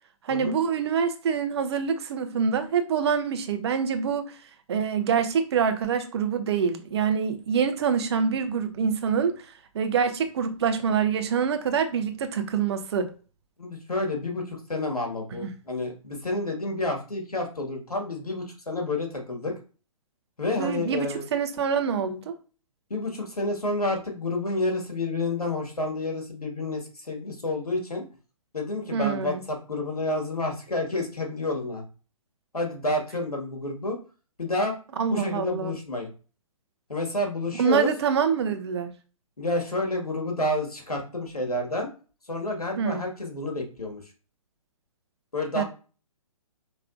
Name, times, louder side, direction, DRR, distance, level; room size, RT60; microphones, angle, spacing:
voice 1, 0.2-4.4 4.7-9.4 9.7-13.1 15.4-15.5 20.6-22.4 28.9-29.4 35.0-35.7 37.6-38.9 42.8-43.0 45.5-45.6, right 6 dB, 45° right, 0.8 m, -25 dB
voice 2, 13.6-19.5 20.4-21.3 22.9-28.0 28.5-31.8 32.5-34.0 34.4-34.7 35.1-36.1 36.9-37.9 39.4-41.9 42.3-44.0 45.3-45.6, left 2 dB, 85° left, 1.7 m, -29 dB
5.0 x 3.3 x 2.4 m
figure-of-eight pair, 130°, 19 cm